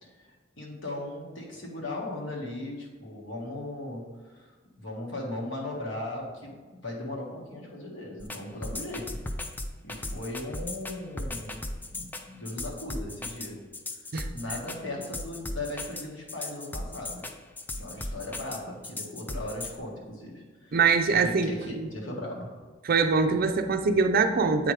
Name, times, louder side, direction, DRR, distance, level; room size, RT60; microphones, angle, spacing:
voice 1, 0.0-4.5 4.7-9.2 9.8-11.6 11.9-13.6 14.3-17.3 17.7-20.8 21.2-22.6, left 1 dB, 75° left, -2 dB, 1.6 m, -38 dB
sound 1, 8.2-19.8, left 2 dB, 10° left, 0.4 m, -36 dB
voice 2, 20.7-21.9 22.8-24.7, right 4 dB, 50° right, 7 dB, 0.5 m, -23 dB
8.2 x 5.0 x 3.2 m, 1.4 s
head